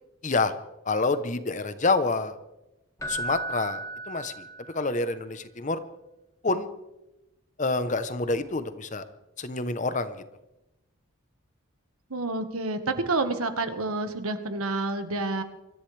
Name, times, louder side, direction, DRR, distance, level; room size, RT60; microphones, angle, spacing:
voice 1, 0.2-0.5 0.9-2.3 3.1-3.8 4.1-4.4 4.7-5.8 6.4-6.7 7.6-9.0 9.4-10.2, left 3 dB, 35° left, 12 dB, 0.8 m, -27 dB
Keyboard (musical), 3.0-5.0 8.2-8.4, right 2 dB, 15° left, 1.8 m, -35 dB
voice 2, 12.1-15.4, right 2 dB, 85° right, 8 dB, 1.5 m, -29 dB
25.0 x 14.0 x 3.3 m, 0.96 s
head